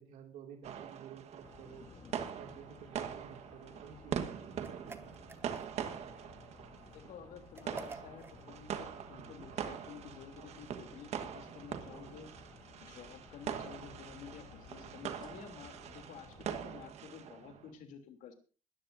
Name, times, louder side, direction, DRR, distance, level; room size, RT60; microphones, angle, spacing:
voice 1, 0.0-1.9 2.4-4.4, right 8 dB, 80° right, 3 dB, 2.5 m, -52 dB
sound 1, 0.6-17.7, right 8 dB, 55° right, 1.4 m, -43 dB
sound 2, 1.4-16.9, left 4 dB, 35° left, 2.8 m, -57 dB
sound 3, 4.6-5.9 7.6-8.4, right 3 dB, 15° right, 1.0 m, -49 dB
voice 2, 6.9-12.3 12.8-18.3, left 7 dB, 75° left, 5 dB, 3.1 m, -51 dB
20.5 x 14.0 x 2.7 m, 0.36 s
cardioid pair, 180°, 13 cm